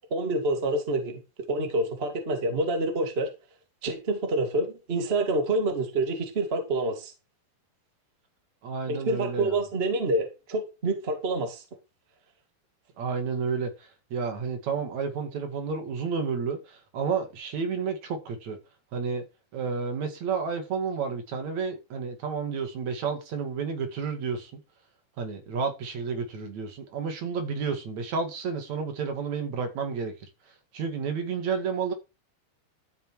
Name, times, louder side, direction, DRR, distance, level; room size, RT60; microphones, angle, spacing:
voice 1, 0.1-1.2 1.5-3.3 3.8-7.1 8.9-11.6, right 2 dB, 85° right, 0.5 m, -27 dB
voice 2, 8.6-9.6 13.0-18.6 18.9-19.2 19.5-24.6 25.2-30.1 30.7-31.9, right 5 dB, 50° right, 2.4 m, -31 dB
13.0 x 6.8 x 4.7 m
omnidirectional pair, 5.2 m